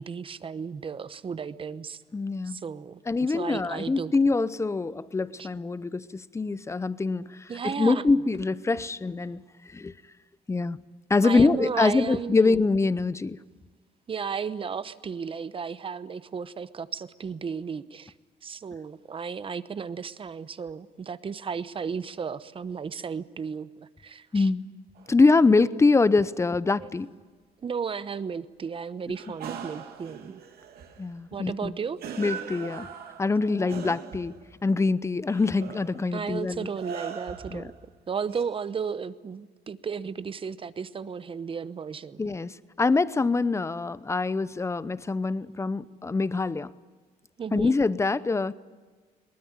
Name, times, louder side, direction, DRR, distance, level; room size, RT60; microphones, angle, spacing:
voice 1, 0.0-2.0 2.4-3.0 3.3-4.1 5.4-5.5 7.5-8.0 11.2-12.6 14.1-18.1 18.4-23.7 24.0-24.5 26.7-26.9 27.6-30.4 31.3-32.0 33.5-33.9 36.1-37.7 38.1-42.2 47.4-47.7, right 6 dB, 30° right, 0.9 m, -34 dB
voice 2, 2.1-2.6 3.1-9.9 10.5-10.8 11.1-13.4 24.3-24.7 25.1-27.1 31.0-31.8 32.2-32.9 33.2-34.4 34.6-36.7 37.5-37.7 42.2-46.7 47.5-48.5, left 3 dB, 15° left, 0.7 m, -24 dB
sound 1, 25.0-25.2 29.1-31.1 32.0-34.5 35.3-37.8 38.3-38.4, right 7 dB, 65° right, 2.8 m, -40 dB
22.5 x 19.5 x 9.7 m
cardioid pair, 110°, 17 cm